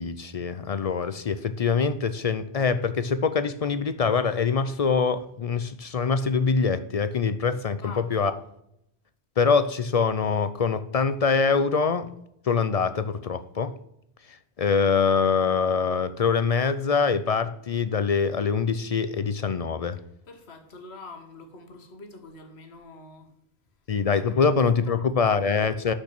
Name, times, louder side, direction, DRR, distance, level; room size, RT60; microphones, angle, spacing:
voice 1, 0.0-8.3 9.4-12.1 12.5-13.7 14.3-20.0 23.9-25.9, left 5 dB, 50° left, 0.4 m, -24 dB
voice 2, 7.8-8.3 20.3-23.3 24.4-24.6 24.9-25.3, left 3 dB, 75° left, 1.6 m, -45 dB
6.5 x 5.9 x 5.8 m
omnidirectional pair, 1.1 m